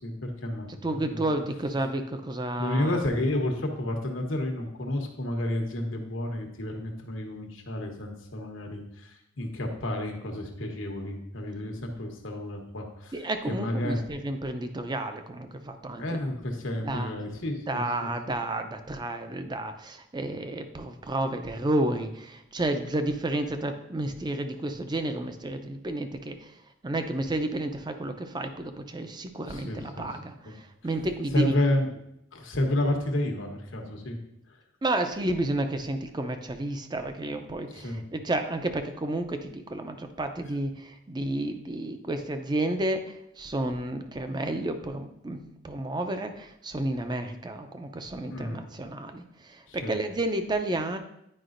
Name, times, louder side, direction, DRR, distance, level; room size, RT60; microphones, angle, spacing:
voice 1, 0.0-1.2 2.5-13.2 13.5-14.0 16.0-18.1 29.5-30.1 30.4-30.5 31.3-31.9 32.3-34.2 34.5-34.6 37.7-38.0 48.3-48.6 49.7-50.0, left 1 dB, 80° left, 2 dB, 1.1 m, -31 dB
voice 2, 0.7-3.0 13.1-16.2 16.8-17.1 17.7-26.5 26.8-31.5 34.8-51.0, right 1 dB, 25° right, 7 dB, 0.5 m, -31 dB
9.8 x 4.9 x 2.5 m, 0.79 s
head